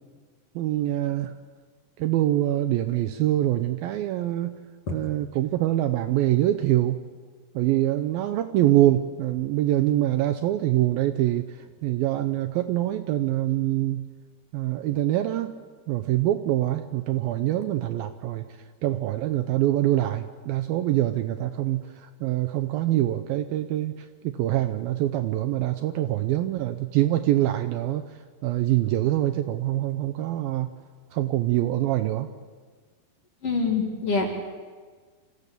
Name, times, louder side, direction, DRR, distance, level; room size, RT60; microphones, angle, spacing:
voice 1, 0.6-1.4 2.0-4.6 4.9-7.0 7.5-14.1 14.5-15.5 15.9-18.5 18.8-28.1 28.4-30.7 31.1-32.3, right 14 dB, 75° right, 8 dB, 2.3 m, -24 dB
voice 2, 33.4-34.3, left 4 dB, 40° left, 2 dB, 2.6 m, -25 dB
26.5 x 15.5 x 6.8 m, 1.5 s
omnidirectional pair, 4.7 m